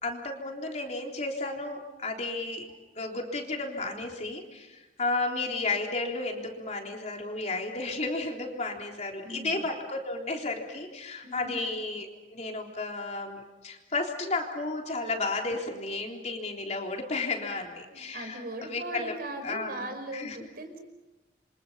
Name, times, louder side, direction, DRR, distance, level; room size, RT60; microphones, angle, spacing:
voice 1, 0.0-2.7 3.0-19.1 19.4-19.9 20.1-20.4, left 3 dB, 40° left, 1 dB, 3.7 m, -33 dB
voice 2, 9.2-9.7 11.2-11.7 17.8-20.8, right 1 dB, 60° right, 6 dB, 5.3 m, -39 dB
28.5 x 25.5 x 5.8 m, 1.1 s
head